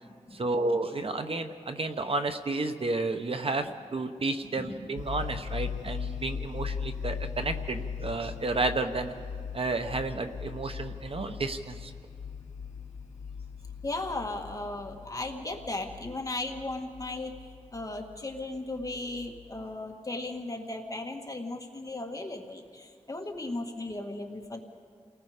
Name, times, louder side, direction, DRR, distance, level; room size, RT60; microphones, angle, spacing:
voice 1, 0.3-9.1 9.5-11.9, right 3 dB, 50° right, 7 dB, 1.0 m, -31 dB
sound 1, 5.0-19.6, left 6 dB, 90° left, 0.7 m, -39 dB
voice 2, 13.8-24.6, left 2 dB, 30° left, 2 dB, 1.7 m, -36 dB
29.5 x 19.0 x 5.1 m, 2.2 s
wide cardioid pair, 100°, 12 cm